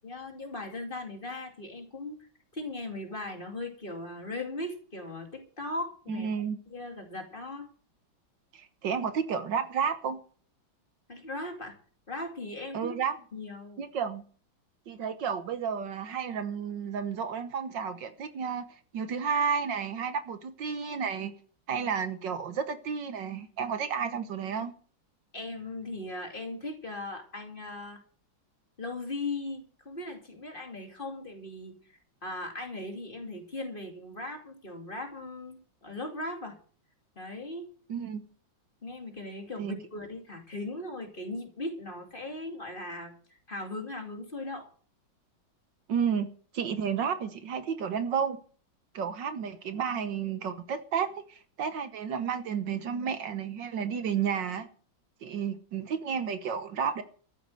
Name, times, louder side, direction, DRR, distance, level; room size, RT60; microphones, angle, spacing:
voice 1, 0.0-2.3 2.5-6.3 6.7-7.7 11.1-11.8 12.1-13.0 13.3-13.8 25.3-28.0 28.8-36.6 37.2-37.7 38.8-43.1 43.5-44.7, left 2 dB, 25° left, 2.5 m, -38 dB
voice 2, 6.1-6.6 8.5-10.2 12.7-13.2 13.8-14.2 14.9-18.7 18.9-21.3 21.7-24.7 37.9-38.3 39.6-39.8 45.9-48.4 48.9-54.7 55.2-57.0, right 7 dB, 70° right, 1.7 m, -31 dB
13.5 x 8.2 x 7.7 m
omnidirectional pair, 2.1 m